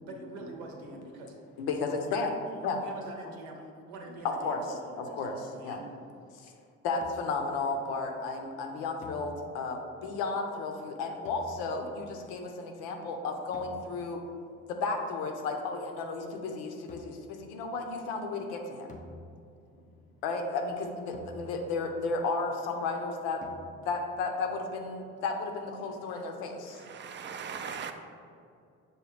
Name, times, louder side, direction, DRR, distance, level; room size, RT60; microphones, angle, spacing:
voice 1, 0.0-1.4 2.8-5.9, right 2 dB, 75° right, 2 dB, 0.8 m, -45 dB
voice 2, 1.6-2.3 2.6-2.8 4.4-4.6 5.0-5.8 6.4-6.5 6.8-14.2 14.7-18.9 20.2-23.4 23.8-26.8, left 3 dB, 75° left, 3 dB, 0.7 m, -33 dB
sound 1, 7.0-7.6 9.0-9.9 11.2-12.0 13.5-14.2 16.9-17.4 18.9-19.8 21.1-21.9 23.4-24.1, left 1 dB, 20° left, 0.5 m, -50 dB
voice 3, 26.7-27.9, right 7 dB, 30° right, 7 dB, 0.4 m, -39 dB
6.3 x 2.2 x 3.3 m, 2.4 s
hypercardioid pair, 60°, 36 cm